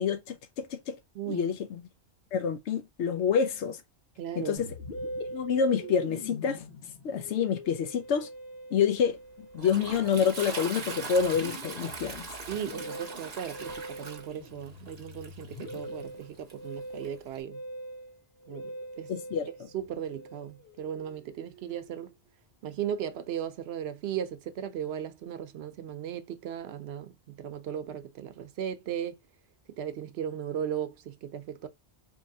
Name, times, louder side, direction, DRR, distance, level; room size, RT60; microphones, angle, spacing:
voice 1, 0.0-1.0 1.3-1.8 2.3-3.8 4.4-4.7 5.3-6.6 7.0-8.3 8.7-9.2 9.5-12.3 19.1-19.5, left 7 dB, 85° left, 0.9 m, -27 dB
voice 2, 1.1-1.5 4.2-4.7 12.5-17.6 18.5-19.1 19.7-22.1 22.6-29.2 29.8-31.7, right 9 dB, 70° right, 0.8 m, -36 dB
Musical instrument, 4.6-22.2, equal, 65° left, 1.7 m, -43 dB
Toilet flush, 9.1-17.4, right 4 dB, 40° right, 0.8 m, -42 dB
4.4 x 2.8 x 2.7 m
omnidirectional pair, 1.1 m